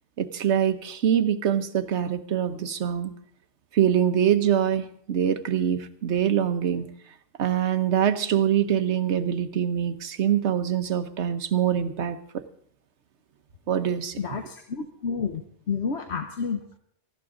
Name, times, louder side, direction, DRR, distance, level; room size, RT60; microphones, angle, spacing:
voice 1, 0.2-3.1 3.7-6.9 7.4-12.4 13.7-14.5, right 9 dB, 70° right, 10 dB, 1.2 m, -24 dB
voice 2, 14.2-16.8, left 5 dB, 65° left, 5 dB, 1.3 m, -30 dB
18.5 x 15.0 x 3.8 m, 0.64 s
omnidirectional pair, 1.2 m